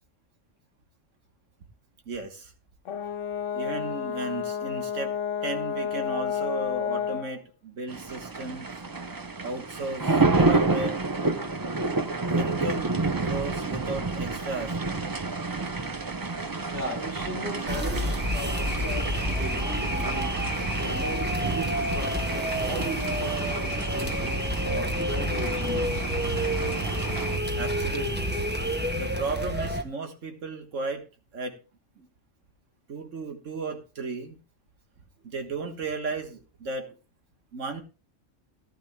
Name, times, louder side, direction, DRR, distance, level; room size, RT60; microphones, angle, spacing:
voice 1, 2.1-2.5 3.5-5.1 5.4-8.7 9.4-11.0 12.3-14.9 27.6-28.3 28.9-31.0 31.3-31.6 32.0-32.1 32.9-34.4 35.2-36.9 37.5-37.8, right 3 dB, 90° right, 6 dB, 1.8 m, -34 dB
Brass instrument, 2.8-7.3, left 8 dB, 80° left, 1.1 m, -30 dB
sound 1, 7.9-27.4, right 3 dB, 25° right, 0.5 m, -30 dB
voice 2, 16.7-20.4 20.8-26.1, right 1 dB, 65° right, -1 dB, 3.6 m, -37 dB
sound 2, 17.7-29.8, equal, 10° right, 1.0 m, -29 dB
17.5 x 11.5 x 2.3 m, 0.30 s
omnidirectional pair, 1.3 m